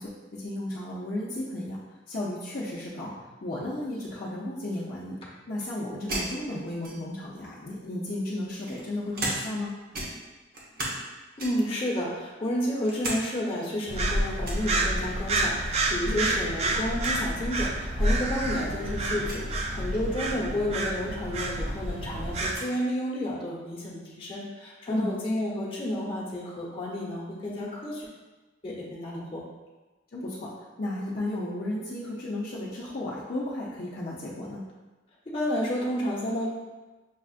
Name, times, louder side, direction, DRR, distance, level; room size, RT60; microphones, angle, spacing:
voice 1, 0.0-1.8 2.1-3.1 3.4-5.2 5.5-9.7 16.0-16.2 24.9-25.1 30.1-30.5 30.8-34.6, left 1 dB, 55° left, -7 dB, 0.6 m, -34 dB
sound 1, 6.1-7.3 8.1-9.7 9.9-11.1 11.4-11.8 12.3-13.2 13.6-13.7 14.4-14.7 16.1-16.5 16.7-16.8 17.0-17.2 18.0-18.1 19.2-19.5 21.1-21.2 21.6-22.7, right 1 dB, 55° right, 0.9 m, -36 dB
voice 2, 11.4-28.1 28.6-29.4 35.3-36.5, left 1 dB, 30° left, -5 dB, 0.9 m, -31 dB
sound 2, 13.9-22.5, right 1 dB, 35° right, 0.4 m, -29 dB
6.3 x 2.4 x 2.4 m, 1.2 s
head